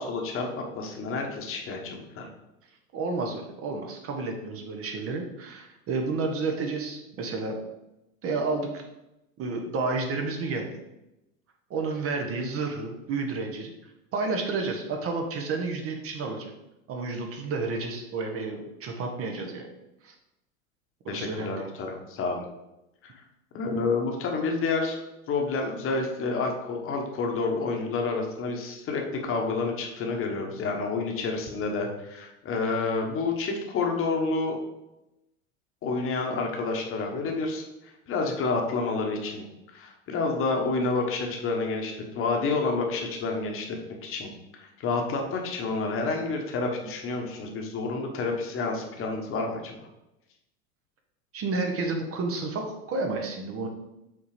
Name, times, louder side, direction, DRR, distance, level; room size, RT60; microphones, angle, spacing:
voice 1, 0.0-2.3 21.1-22.4 23.0-23.1 23.5-25.0 25.3-34.6 35.8-39.4 39.7-49.9, left 3 dB, 30° left, 2 dB, 1.4 m, -29 dB
voice 2, 2.9-7.6 8.2-8.8 9.4-10.8 11.7-13.7 14.1-16.5 16.9-19.7 20.0-20.1 21.0-21.6 51.3-53.7, right 3 dB, 35° right, 3 dB, 1.2 m, -31 dB
6.0 x 3.9 x 5.0 m, 0.92 s
hypercardioid pair, 95°, 42 cm